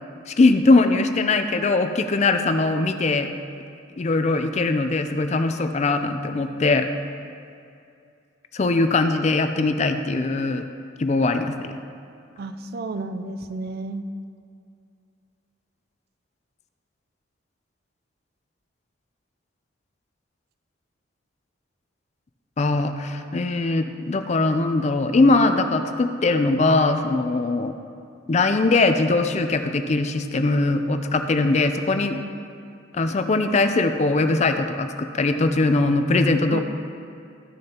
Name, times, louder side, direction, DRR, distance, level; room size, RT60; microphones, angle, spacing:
voice 1, 0.3-3.3 4.0-6.9 8.5-10.6 11.0-11.7 22.6-27.7 28.3-32.2 32.9-36.6, left 3 dB, 35° left, 8 dB, 0.4 m, -21 dB
voice 2, 12.4-14.0 36.5-36.6, right 3 dB, 55° right, 9 dB, 0.4 m, -31 dB
13.5 x 6.4 x 2.9 m, 2.4 s
head